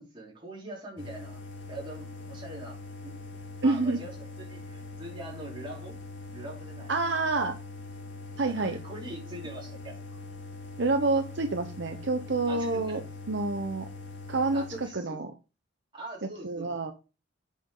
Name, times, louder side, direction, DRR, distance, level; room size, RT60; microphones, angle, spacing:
voice 1, 0.0-1.4 1.7-2.8 3.0-3.1 3.6-6.0 6.3-6.9 8.4-10.2 12.4-13.1 14.5-15.2 15.9-16.7, right 1 dB, 25° right, -4 dB, 4.6 m, -42 dB
sound 1, 1.0-14.9, left 3 dB, 65° left, 2.0 m, -43 dB
voice 2, 3.6-4.0 6.9-7.6 8.4-8.8 10.8-13.0 13.3-13.9 14.3-15.3 16.4-16.9, right 3 dB, 60° right, 6 dB, 0.8 m, -28 dB
8.4 x 6.6 x 3.8 m, 0.31 s
head